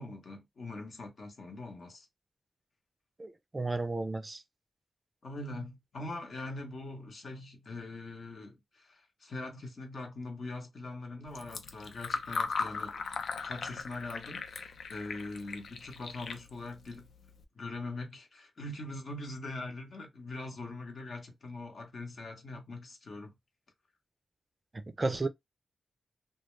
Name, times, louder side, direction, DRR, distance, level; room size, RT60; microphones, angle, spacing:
voice 1, 0.0-2.1 5.2-12.9 13.4-17.1 17.5-23.3, left 2 dB, 65° left, 0.8 m, -42 dB
voice 2, 3.2-4.4 24.9-25.3, right 2 dB, 30° right, 0.3 m, -33 dB
Fill (with liquid), 11.3-17.4, left 5 dB, 80° left, 0.4 m, -39 dB
2.3 x 2.0 x 3.0 m
cardioid pair, 75°, 0 cm